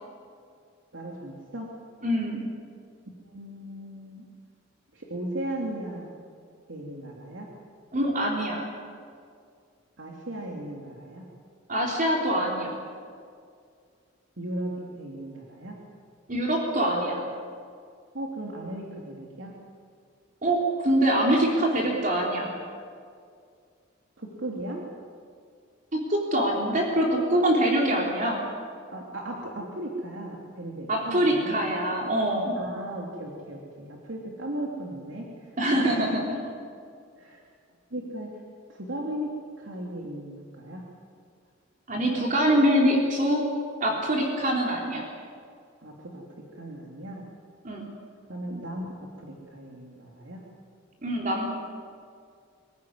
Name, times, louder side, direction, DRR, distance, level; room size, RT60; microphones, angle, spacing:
voice 1, 0.9-1.7 3.3-4.2 4.9-6.1 6.7-7.5 10.0-11.2 14.4-14.7 15.0-15.7 18.1-19.5 24.2-24.8 28.9-31.6 32.6-35.3 35.8-36.2 37.2-37.4 37.9-38.3 38.7-39.3 39.6-40.8 45.8-46.2 46.5-47.2 48.3-50.4, right 1 dB, 80° right, -1 dB, 3.0 m, -36 dB
voice 2, 2.0-2.4 7.9-8.7 11.7-12.8 16.3-17.2 20.4-22.6 25.9-28.4 30.9-32.6 35.6-36.2 41.9-43.5 43.8-45.1 47.6-47.8 51.0-51.4, right 1 dB, 45° right, -1 dB, 3.6 m, -24 dB
25.0 x 15.5 x 9.7 m, 2.2 s
head